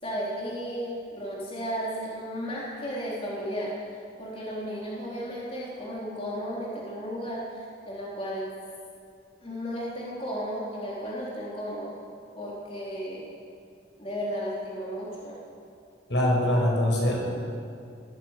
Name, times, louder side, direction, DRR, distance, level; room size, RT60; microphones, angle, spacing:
voice 1, 0.0-3.7 4.2-8.5 9.4-11.9 12.3-13.3 14.0-15.4, equal, 30° left, -5 dB, 3.9 m, -34 dB
voice 2, 16.1-17.3, left 1 dB, 75° left, -2 dB, 6.3 m, -23 dB
21.0 x 16.0 x 8.3 m, 2.4 s
head